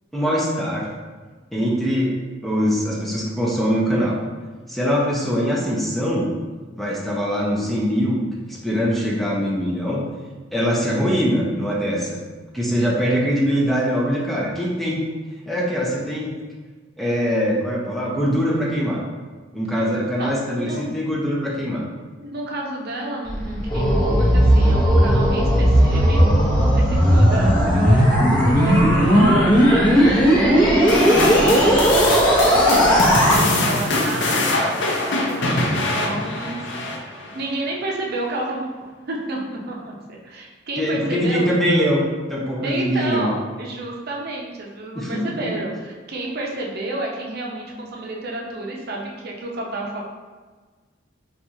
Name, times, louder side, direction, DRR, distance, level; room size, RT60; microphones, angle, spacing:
voice 1, 0.1-0.9 1.5-2.1 2.4-4.2 4.7-6.3 6.8-10.0 10.5-12.2 12.5-15.0 15.5-16.3 17.0-19.0 19.5-21.9 40.8-42.0 42.3-43.3 45.0-45.3, equal, ahead, -4 dB, 0.4 m, -22 dB
voice 2, 20.2-20.8 22.2-38.7 39.1-41.5 42.6-50.0, right 2 dB, 55° right, -1 dB, 0.6 m, -30 dB
sound 1, 23.3-33.4, equal, 25° left, 0.8 m, -16 dB
sound 2, 30.9-37.4, left 2 dB, 65° left, 0.6 m, -23 dB
4.2 x 2.4 x 2.7 m, 1.4 s
head